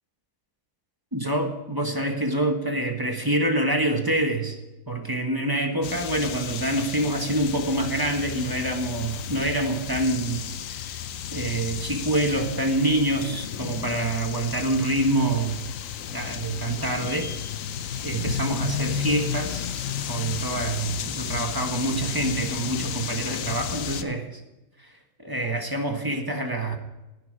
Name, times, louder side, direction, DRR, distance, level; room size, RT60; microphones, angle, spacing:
voice 1, 1.1-4.6 4.9-11.0 11.3-15.6 16.1-17.3 18.0-19.8 20.1-24.4 24.8-24.9 25.2-26.8, right 1 dB, 15° right, 2 dB, 1.3 m, -26 dB
sound 1, 5.8-24.0, left 9 dB, 65° left, 1.0 m, -33 dB
19.0 x 7.0 x 4.8 m, 1.0 s
omnidirectional pair, 1.6 m